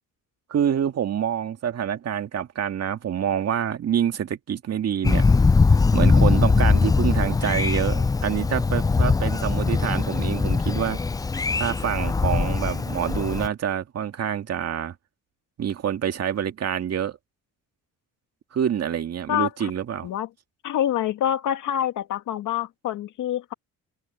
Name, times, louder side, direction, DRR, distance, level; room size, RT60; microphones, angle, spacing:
voice 1, 0.5-5.3 5.9-11.0 11.6-14.9 15.6-17.2 18.5-20.1, right 9 dB, 55° right, 2.0 m, -26 dB
Thunder, 5.0-13.5, left 4 dB, 15° left, 0.3 m, -21 dB
voice 2, 19.3-19.7 20.0-20.3 20.6-23.5, left 11 dB, 80° left, 2.6 m, -26 dB
cardioid pair, 90°, 30 cm